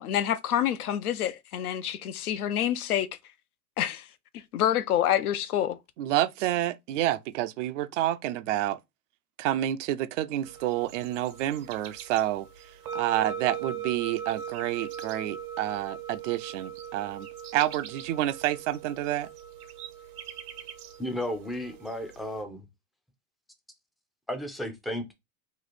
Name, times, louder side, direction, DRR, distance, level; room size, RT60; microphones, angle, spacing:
voice 1, 0.0-3.1 3.8-4.1 4.3-5.8, left 11 dB, 80° left, 0.7 m, -27 dB
voice 2, 6.0-8.8 9.4-12.5 12.9-17.3 17.5-19.3, right 13 dB, 55° right, 0.5 m, -29 dB
sound 1, 10.4-22.4, right 8 dB, 80° right, 1.1 m, -40 dB
voice 3, 21.0-22.7 24.3-25.1, left 1 dB, ahead, 0.4 m, -33 dB
3.1 x 2.4 x 4.1 m
hypercardioid pair, 105°, 44 cm